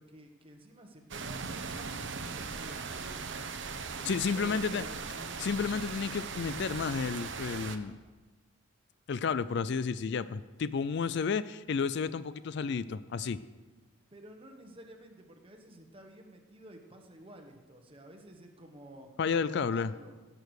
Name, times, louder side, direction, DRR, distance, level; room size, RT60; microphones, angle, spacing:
voice 1, 0.0-3.2 3.9-5.4 14.1-19.1 19.4-20.2, right 1 dB, 25° right, 4 dB, 1.3 m, -51 dB
sound 1, 1.1-7.8, right 5 dB, 60° right, 0.8 m, -39 dB
voice 2, 4.0-4.8 5.4-8.0 9.1-13.4 19.2-19.9, left 5 dB, 55° left, 15 dB, 0.4 m, -31 dB
17.0 x 6.8 x 6.5 m, 1.3 s
head